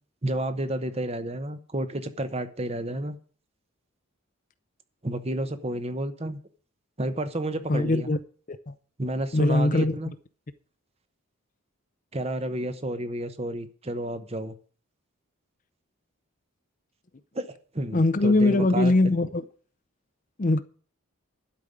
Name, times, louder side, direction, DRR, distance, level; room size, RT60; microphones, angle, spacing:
voice 1, 0.2-3.2 5.0-6.4 7.0-8.1 9.0-10.1 12.1-14.6 17.3-19.2, right 1 dB, 25° right, 0.9 m, -31 dB
voice 2, 7.7-8.2 8.5-8.7 9.3-10.0 17.9-19.4 20.4-20.6, left 2 dB, 35° left, 0.6 m, -21 dB
12.0 x 5.3 x 8.9 m
head